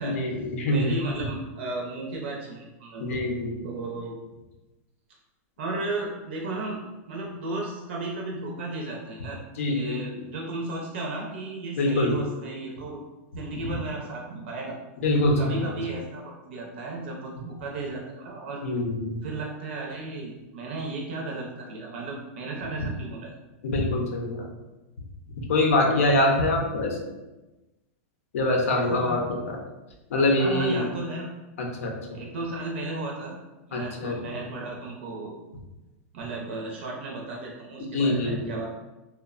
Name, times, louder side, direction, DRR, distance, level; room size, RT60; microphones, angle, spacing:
voice 1, 0.0-0.9 3.0-3.6 9.6-10.3 11.8-12.2 15.0-15.7 18.6-19.2 23.6-24.5 25.5-27.0 28.3-29.6 30.1-30.8 31.6-31.9 33.7-34.4 37.9-38.4, left 1 dB, 75° left, 1 dB, 0.6 m, -24 dB
voice 2, 0.7-3.2 3.6-4.2 5.6-6.8 7.1-9.4 9.6-13.0 13.3-14.8 15.4-18.6 19.2-23.3 28.7-29.3 30.4-31.3 32.1-33.4 33.7-35.4 36.1-38.7, right 2 dB, 55° right, -1 dB, 0.5 m, -34 dB
3.1 x 2.0 x 2.3 m, 1.1 s
supercardioid pair, 170°, 8 cm